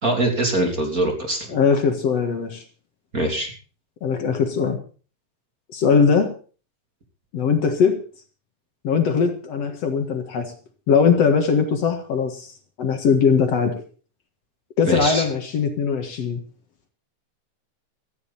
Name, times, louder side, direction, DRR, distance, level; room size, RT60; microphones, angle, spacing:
voice 1, 0.0-1.6 3.1-3.5 14.8-15.2, right 1 dB, 30° right, 2 dB, 3.3 m, -23 dB
voice 2, 1.5-2.6 4.0-4.8 5.7-6.3 7.3-8.0 8.8-10.5 10.9-12.5 12.8-13.8 14.8-16.4, left 6 dB, 60° left, 5 dB, 2.7 m, -20 dB
17.5 x 14.5 x 4.3 m, 0.39 s
omnidirectional pair, 3.5 m